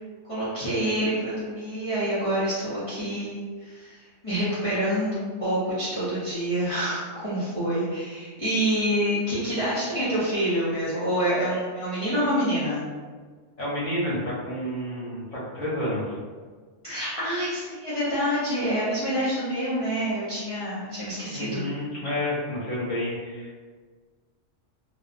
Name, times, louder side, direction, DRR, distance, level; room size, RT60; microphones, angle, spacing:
voice 1, 0.2-12.9 16.8-21.6, equal, 35° left, -12 dB, 0.6 m, -27 dB
voice 2, 13.6-16.2 21.3-23.6, left 1 dB, 85° left, -7 dB, 1.2 m, -30 dB
2.6 x 2.1 x 2.4 m, 1.5 s
omnidirectional pair, 1.3 m